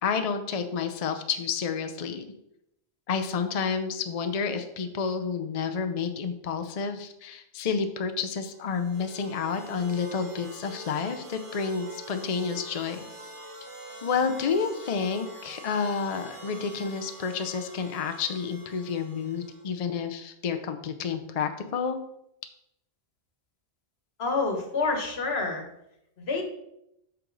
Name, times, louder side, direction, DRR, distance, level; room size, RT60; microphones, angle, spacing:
voice 1, 0.0-2.3 3.1-13.1 14.0-22.0, left 6 dB, 45° left, 8 dB, 0.6 m, -30 dB
sound 1, 8.5-19.8, right 1 dB, 35° right, 1.0 m, -45 dB
voice 2, 24.2-25.6 26.2-26.4, left 3 dB, 80° left, 3 dB, 1.5 m, -28 dB
7.8 x 5.9 x 3.9 m, 0.81 s
omnidirectional pair, 1.0 m